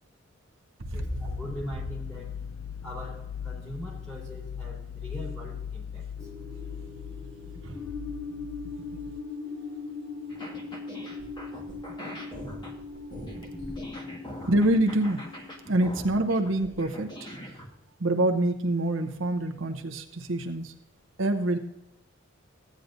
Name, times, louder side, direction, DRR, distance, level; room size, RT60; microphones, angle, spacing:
sound 1, 0.9-9.2, left 7 dB, 75° left, 0.4 m, -39 dB
voice 1, 0.9-2.3 2.8-6.3, equal, 5° left, -5 dB, 3.5 m, -41 dB
sound 2, 6.2-17.1, left 4 dB, 55° left, 4.2 m, -41 dB
sound 3, 10.3-17.7, equal, 20° left, 1.6 m, -42 dB
voice 2, 14.5-15.2 15.7-17.3 18.0-20.7 21.2-21.6, right 1 dB, 65° right, 4 dB, 0.8 m, -26 dB
15.0 x 9.3 x 2.6 m, 0.82 s
head